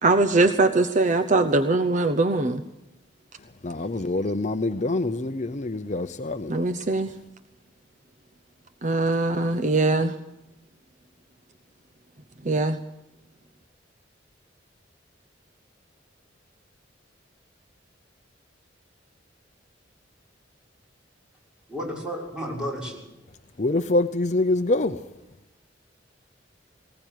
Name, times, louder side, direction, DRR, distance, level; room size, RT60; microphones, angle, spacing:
voice 1, 0.0-2.6 6.5-7.1 8.8-10.1 12.4-12.8, right 2 dB, 40° right, 0.9 m, -21 dB
voice 2, 3.6-6.5 23.6-25.0, left 2 dB, 40° left, 0.8 m, -25 dB
voice 3, 21.7-23.0, equal, 5° right, 6.4 m, -32 dB
20.0 x 19.0 x 9.2 m
head